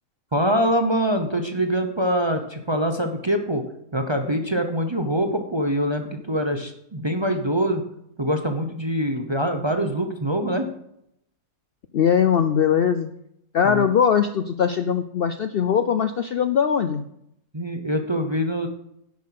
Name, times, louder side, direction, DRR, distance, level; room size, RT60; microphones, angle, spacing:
voice 1, 0.3-3.6 3.9-7.8 8.2-10.7 13.6-13.9 17.5-18.7, equal, 25° right, 5 dB, 0.6 m, -24 dB
voice 2, 11.9-13.1 13.5-17.0, left 8 dB, 85° left, 9 dB, 0.5 m, -21 dB
10.5 x 7.3 x 5.9 m, 0.76 s
omnidirectional pair, 1.7 m